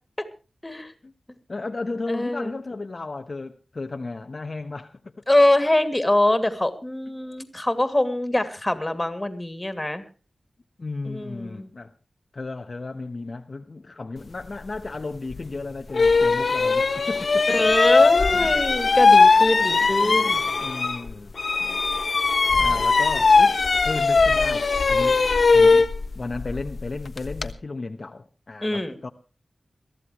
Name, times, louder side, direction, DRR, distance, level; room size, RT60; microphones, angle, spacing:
voice 1, 1.5-5.0 10.8-11.9 12.3-17.6 19.8-21.5 22.6-25.2 25.5-29.1, left 3 dB, 50° left, 1.1 m, -34 dB
voice 2, 2.1-2.5 5.3-10.0 11.1-11.7 17.5-20.5 21.6-21.8 22.5-22.8 28.6-29.0, left 1 dB, 20° left, 2.5 m, -24 dB
sound 1, 15.3-15.4 15.9-21.1 21.4-27.5, left 4 dB, 65° left, 1.2 m, -19 dB
22.5 x 14.5 x 3.1 m
wide cardioid pair, 70°, 0 cm